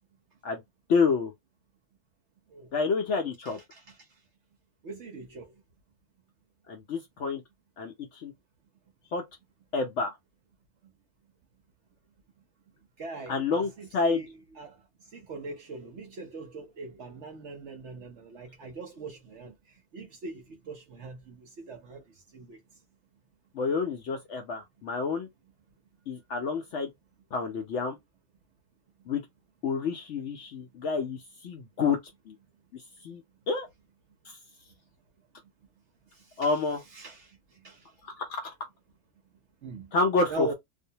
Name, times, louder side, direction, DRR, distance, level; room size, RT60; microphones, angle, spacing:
voice 1, 0.9-1.3 2.7-3.6 6.7-7.4 7.8-8.3 9.1-9.2 9.7-10.1 13.3-14.2 23.5-25.3 26.1-26.9 27.3-28.0 29.1-29.2 29.6-32.0 32.3-32.4 32.7-33.2 33.5-33.7 34.3-34.4 36.4-36.8 38.0-38.5 39.9-40.5, left 4 dB, 65° left, 0.7 m, -29 dB
voice 2, 3.5-4.0 4.8-5.5 13.0-14.8 15.1-19.5 19.9-22.0 22.3-22.6 36.1-36.6 36.9-37.9 39.6-39.9 40.3-40.5, right 4 dB, 60° right, 0.8 m, -41 dB
2.6 x 2.1 x 2.7 m
omnidirectional pair, 1.6 m